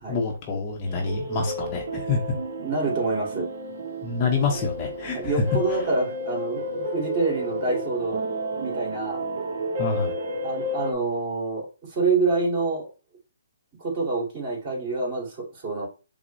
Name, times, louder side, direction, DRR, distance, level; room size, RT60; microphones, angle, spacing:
voice 1, 0.1-2.2 4.0-5.4 9.8-10.1, left 4 dB, 30° left, 1 dB, 0.7 m, -27 dB
sound 1, 0.9-10.9, equal, 55° right, 0.7 m, -31 dB
voice 2, 2.6-3.5 5.1-8.2 8.6-9.2 10.4-12.9 13.8-15.9, right 3 dB, 30° right, -2 dB, 2.1 m, -27 dB
5.9 x 2.1 x 2.6 m, 0.31 s
hypercardioid pair, 145°, 0 cm